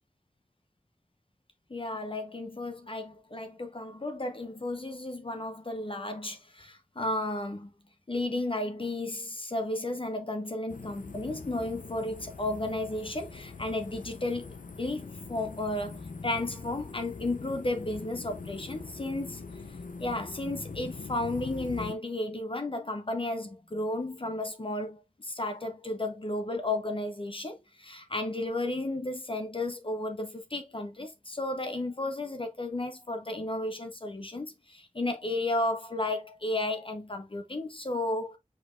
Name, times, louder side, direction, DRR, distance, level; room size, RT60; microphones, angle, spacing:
voice 1, 1.7-7.7 8.1-19.5 20.0-38.4, left 2 dB, 40° left, 0.7 m, -33 dB
sound 1, 10.7-21.9, left 4 dB, 90° left, 0.6 m, -43 dB
5.2 x 4.1 x 2.4 m
wide cardioid pair, 55°, 13 cm